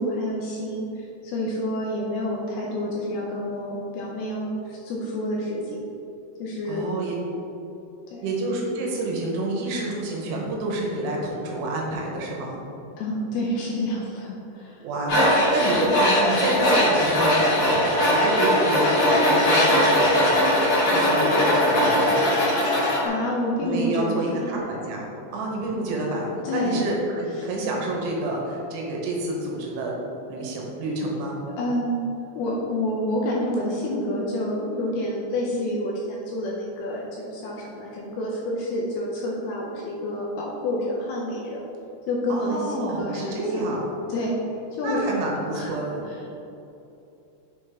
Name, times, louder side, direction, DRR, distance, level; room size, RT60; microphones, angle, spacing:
voice 1, 0.0-5.8 6.4-6.9 8.1-8.2 13.0-14.8 23.0-24.6 26.4-26.8 27.4-27.5 31.5-32.1 32.4-41.6 42.1-43.7 44.1-44.4 44.8-45.0 45.5-46.2, left 1 dB, 80° left, -3 dB, 2.4 m, -28 dB
voice 2, 6.7-7.2 8.2-12.6 14.8-22.2 23.6-30.0 30.3-31.4 42.3-43.9 44.8-46.0, right 2 dB, 80° right, -2 dB, 3.0 m, -28 dB
Tools, 15.1-23.0, left 1 dB, 60° left, 1.5 m, -20 dB
7.0 x 5.2 x 3.5 m, 2.9 s
omnidirectional pair, 5.1 m